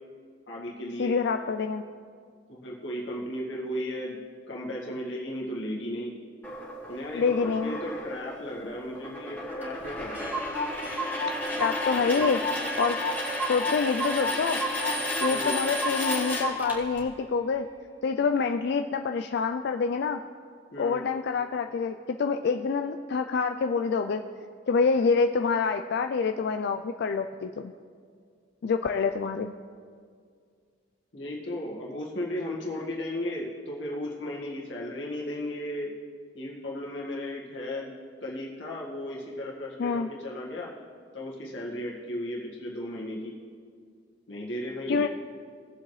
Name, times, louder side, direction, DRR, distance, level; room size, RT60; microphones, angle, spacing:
voice 1, 0.5-1.1 2.5-4.2 4.5-6.2 6.9-10.4 11.9-12.3 15.3-15.6 20.7-21.0 31.1-35.9 36.3-37.9 38.2-40.7 41.1-43.3 44.3-45.1, left 1 dB, 80° left, -4 dB, 1.7 m, -35 dB
voice 2, 1.0-1.8 7.1-7.8 11.6-12.4 12.8-13.0 13.5-14.6 15.2-17.7 18.0-20.2 20.8-24.2 24.7-27.7 28.6-29.5 39.8-40.1 44.9-45.1, left 5 dB, 60° left, 6 dB, 0.4 m, -26 dB
sound 1, 6.4-17.0, left 1 dB, 10° left, 1.8 m, -33 dB
Clock, 9.6-9.7 9.9-10.0 10.1-16.8, equal, 10° right, 2.4 m, -33 dB
19.0 x 7.4 x 3.2 m, 2.1 s
head